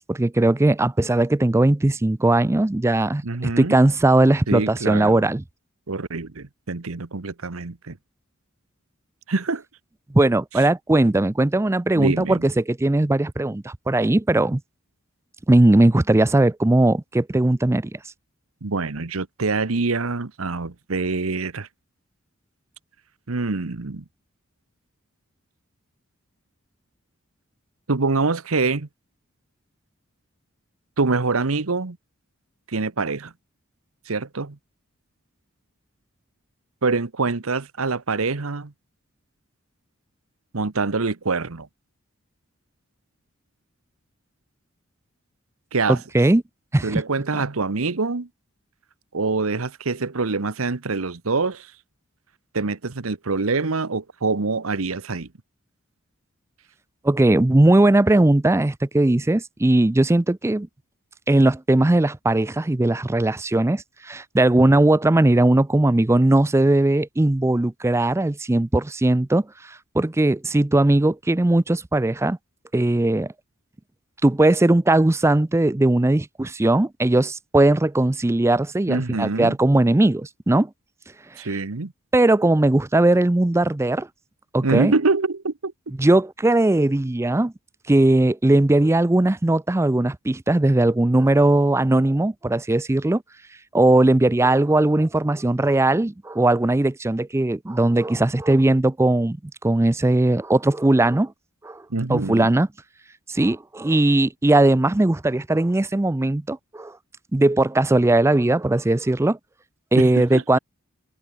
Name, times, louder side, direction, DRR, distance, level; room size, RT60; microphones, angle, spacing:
voice 1, 0.0-3.2 3.6-5.4 10.1-14.6 15.5-17.9 45.9-46.4 46.7-47.0 57.0-60.7 61.3-72.4 72.7-73.3 74.2-80.7 82.1-84.1 84.5-84.9 86.0-87.5 87.9-93.2 93.7-99.4 99.6-101.3 101.6-101.8 102.1-102.7 103.3-107.0 107.3-109.4 109.9-110.6, right 2 dB, 15° right, 0.4 m, -19 dB
voice 2, 3.2-3.8 4.5-5.3 5.9-8.0 9.3-9.6 12.0-12.4 18.6-21.7 23.3-24.0 27.9-28.9 31.0-32.0 32.7-33.3 34.1-34.6 36.8-38.7 40.5-41.7 45.7-46.0 46.8-48.3 49.1-51.7 52.5-55.3 78.9-79.6 81.4-81.9 84.6-85.7 101.9-102.5 109.9-110.6, right 3 dB, 85° right, 1.1 m, -25 dB
head